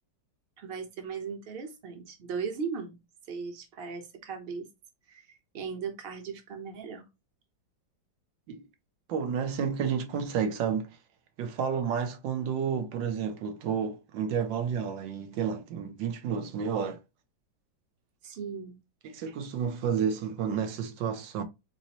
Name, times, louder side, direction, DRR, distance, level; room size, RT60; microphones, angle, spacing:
voice 1, 0.6-3.0 3.3-4.7 5.1-5.2 5.5-7.0 18.2-18.8 19.3-19.4, right 6 dB, 40° right, 1.0 m, -37 dB
voice 2, 9.1-10.9 11.4-17.0 19.0-21.4, right 7 dB, 75° right, 1.5 m, -31 dB
4.2 x 4.0 x 2.9 m
omnidirectional pair, 2.1 m